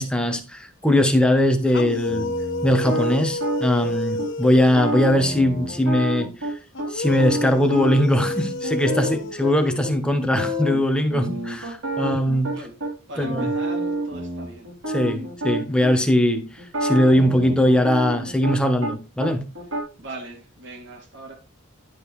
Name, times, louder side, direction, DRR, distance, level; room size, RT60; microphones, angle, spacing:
voice 1, 0.0-2.3 2.6-6.6 6.9-12.5 13.2-13.5 14.9-19.5, left 1 dB, 5° left, 1.1 m, -20 dB
sound 1, 1.7-5.4 6.7-10.4, left 2 dB, 60° left, 0.9 m, -30 dB
sound 2, 1.8-3.9 4.2-4.3 4.6-6.9 7.2-9.5 9.8-9.9 10.2-10.8 11.1-12.9 13.2-15.9 16.6-18.9 19.2-19.8, right 1 dB, 85° right, 3.9 m, -28 dB
voice 2, 13.1-14.7 20.0-21.3, right 2 dB, 60° right, 2.9 m, -39 dB
11.0 x 5.3 x 3.3 m
head